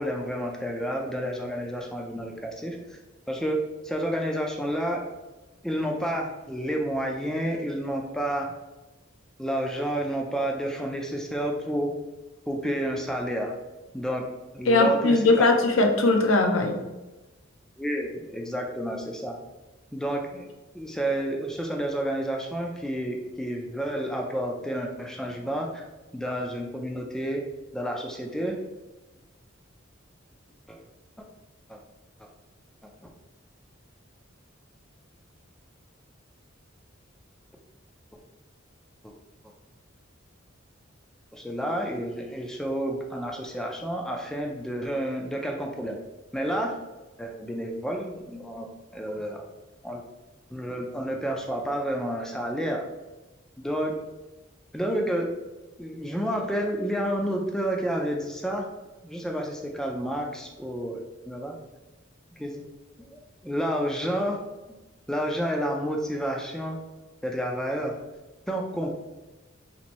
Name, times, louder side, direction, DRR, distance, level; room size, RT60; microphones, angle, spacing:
voice 1, 0.0-2.8 3.3-3.6 3.8-5.0 5.6-8.5 9.4-11.9 12.5-13.5 13.9-14.3 14.5-15.5 17.8-19.4 19.9-20.5 20.7-25.8 26.1-27.4 27.7-28.6 30.7-30.8 31.7-31.8 39.0-39.1 41.3-46.0 46.3-46.7 47.2-48.7 48.9-49.5 49.8-50.0 50.5-52.9 53.6-53.9 54.7-55.3 55.8-58.7 59.0-61.6 62.4-62.6 63.1-64.4 65.1-66.8 67.2-68.0 68.5-68.9, right 1 dB, 5° left, 1 dB, 0.3 m, -30 dB
voice 2, 14.7-16.8, left 2 dB, 75° left, 4 dB, 0.6 m, -20 dB
2.9 x 2.6 x 4.1 m, 1.1 s
head